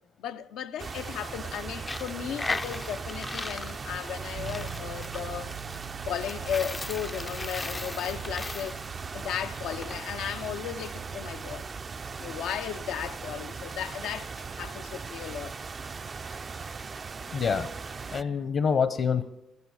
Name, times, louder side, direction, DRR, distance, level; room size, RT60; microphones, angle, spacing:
voice 1, 0.2-5.5 6.1-8.8 9.1-11.7 12.2-15.5, left 9 dB, 85° left, 0.6 m, -35 dB
sound 1, 0.8-18.2, right 5 dB, 40° right, 0.4 m, -38 dB
Coin (dropping), 1.7-10.0, left 3 dB, 20° left, 0.4 m, -38 dB
sound 2, 4.3-14.2, right 9 dB, 75° right, 1.8 m, -47 dB
voice 2, 17.3-19.2, left 6 dB, 55° left, 0.9 m, -27 dB
13.5 x 11.0 x 7.2 m
cardioid pair, 90°, 0 cm